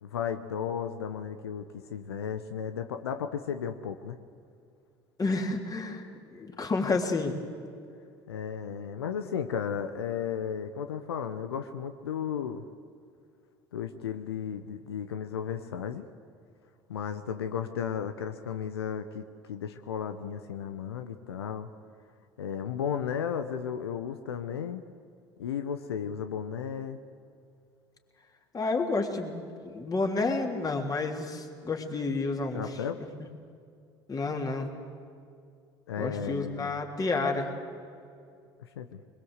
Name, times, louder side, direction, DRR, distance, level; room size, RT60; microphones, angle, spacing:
voice 1, 0.0-4.2 8.3-12.7 13.7-16.1 16.9-21.7 22.4-24.9 25.4-27.0 32.5-33.0 35.9-36.8 38.6-39.0, left 8 dB, 85° left, 8 dB, 0.8 m, -34 dB
voice 2, 5.2-7.4 28.5-32.6 34.1-34.7 36.0-37.5, left 3 dB, 30° left, 2 dB, 3.4 m, -30 dB
22.0 x 21.5 x 8.1 m, 2.3 s
hypercardioid pair, 70°, 13 cm